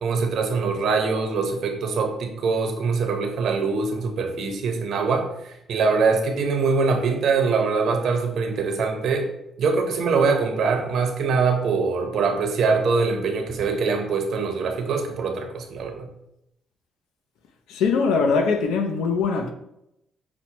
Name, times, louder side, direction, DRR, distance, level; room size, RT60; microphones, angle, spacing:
voice 1, 0.0-9.3 9.6-16.1, right 4 dB, 70° right, 0.7 m, -23 dB
voice 2, 17.7-19.5, left 5 dB, 90° left, 0.5 m, -22 dB
5.8 x 2.1 x 2.9 m
cardioid pair, 90°, 0 cm